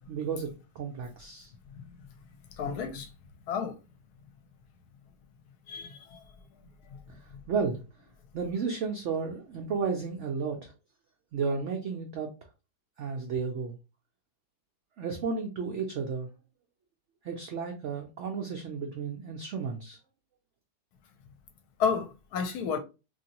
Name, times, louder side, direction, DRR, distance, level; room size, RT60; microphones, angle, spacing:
voice 1, 0.1-1.5 7.5-7.8 8.3-10.7 11.3-12.3 13.0-13.8 15.0-16.3 17.2-20.0, right 5 dB, 85° right, 0.6 m, -33 dB
voice 2, 2.6-3.1 3.5-3.7 5.7-6.2 21.8-22.8, left 6 dB, 70° left, 1.0 m, -31 dB
3.1 x 2.6 x 2.8 m
omnidirectional pair, 1.9 m